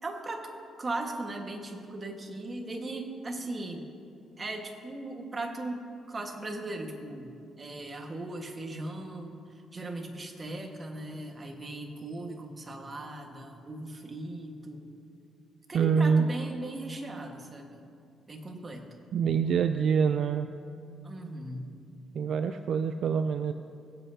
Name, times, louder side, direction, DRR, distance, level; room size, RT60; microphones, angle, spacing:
voice 1, 0.0-0.5 0.8-3.8 4.4-14.9 15.7-17.8 18.3-19.0 21.0-21.7, right 2 dB, 30° right, 3 dB, 1.5 m, -38 dB
voice 2, 15.7-16.3 19.1-20.5 22.1-23.5, right 6 dB, 65° right, 9 dB, 0.4 m, -25 dB
20.5 x 7.9 x 2.8 m, 2.5 s
cardioid pair, 90°, 0 cm